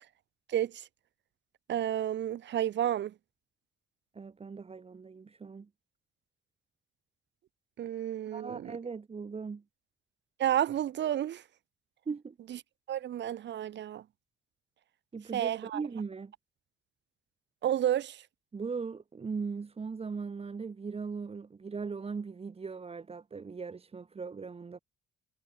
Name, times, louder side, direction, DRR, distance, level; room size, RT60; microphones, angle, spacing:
voice 1, 0.5-0.8 1.7-3.1 7.8-8.7 10.4-11.4 12.9-14.0 15.3-15.8 17.6-18.2, right 11 dB, 65° right, 1.1 m, -31 dB
voice 2, 4.1-5.7 8.3-9.6 12.1-12.4 15.1-16.3 18.5-24.8, right 5 dB, 30° right, 1.4 m, -39 dB
cardioid pair, 90°, 20 cm